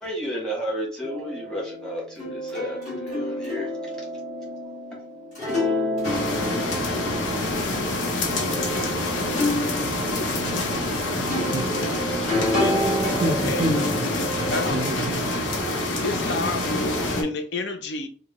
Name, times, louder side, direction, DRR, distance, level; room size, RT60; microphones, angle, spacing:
voice 1, 0.0-3.7, equal, 5° left, 1.2 m, -32 dB
sound 1, 1.0-14.8, left 1 dB, 40° left, 1.6 m, -29 dB
sound 2, 6.0-17.2, left 1 dB, 85° left, 0.8 m, -26 dB
voice 2, 10.5-10.8 12.5-12.9 13.2-13.7 14.5-14.9 15.7-18.1, left 3 dB, 65° left, 0.5 m, -30 dB
voice 3, 11.2-11.7 13.2-14.1 14.7-15.7, right 2 dB, 45° right, 0.5 m, -29 dB
3.5 x 2.1 x 3.5 m
head